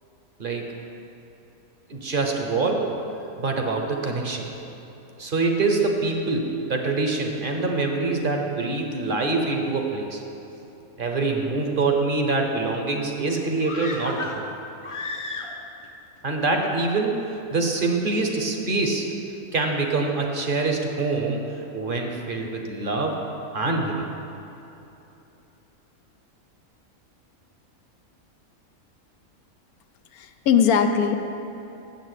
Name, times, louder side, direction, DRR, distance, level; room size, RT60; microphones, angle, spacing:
voice 1, 1.9-2.9 3.4-4.5 5.2-10.2 11.0-14.4 16.2-19.1 19.5-23.2 23.5-24.1, right 3 dB, 40° right, 2 dB, 0.9 m, -25 dB
sound 1, 13.6-15.9 16.2-16.3, left 2 dB, 40° left, 0.5 m, -33 dB
voice 2, 30.1-31.2, left 7 dB, 85° left, 7 dB, 1.1 m, -20 dB
7.2 x 6.7 x 8.1 m, 3.0 s
omnidirectional pair, 1.5 m